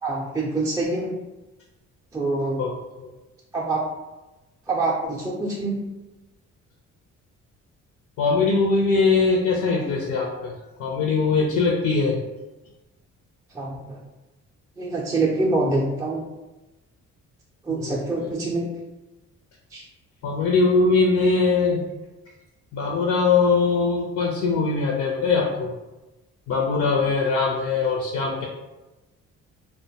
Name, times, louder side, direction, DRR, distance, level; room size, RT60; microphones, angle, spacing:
voice 1, 0.0-1.1 2.1-2.6 3.5-3.8 4.7-5.8 13.5-14.0 14.8-16.2 17.6-18.7 19.7-19.8, right 2 dB, 10° right, -4 dB, 0.4 m, -25 dB
voice 2, 8.2-10.5 10.8-12.2 17.7-17.9 20.2-21.8 22.7-25.7 26.5-28.5, left 4 dB, 75° left, -1 dB, 0.5 m, -21 dB
2.5 x 2.2 x 2.7 m, 1.1 s
cardioid pair, 90°, 30 cm